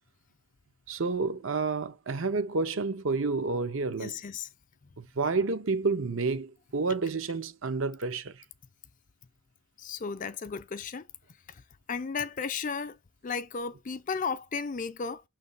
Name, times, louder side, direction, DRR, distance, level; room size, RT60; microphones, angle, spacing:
voice 1, 0.9-4.2 5.0-8.3, right 4 dB, 65° right, 0.7 m, -30 dB
voice 2, 4.0-4.5 9.8-11.0 11.9-13.0 13.2-15.2, left 5 dB, 40° left, 0.5 m, -34 dB
6.3 x 3.3 x 5.3 m
head